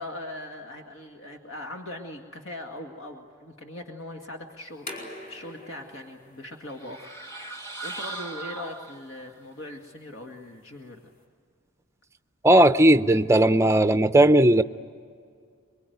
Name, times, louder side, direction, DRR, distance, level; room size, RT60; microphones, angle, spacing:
voice 1, 0.0-7.2 7.8-11.1, left 1 dB, 65° left, 3 dB, 2.0 m, -40 dB
sound 1, 4.6-11.2, left 1 dB, 40° left, 4.7 m, -47 dB
sound 2, 6.7-9.3, right 2 dB, 15° left, 2.2 m, -38 dB
voice 2, 12.4-14.6, right 1 dB, 15° right, 11 dB, 0.6 m, -17 dB
24.5 x 23.0 x 9.4 m, 2.1 s
head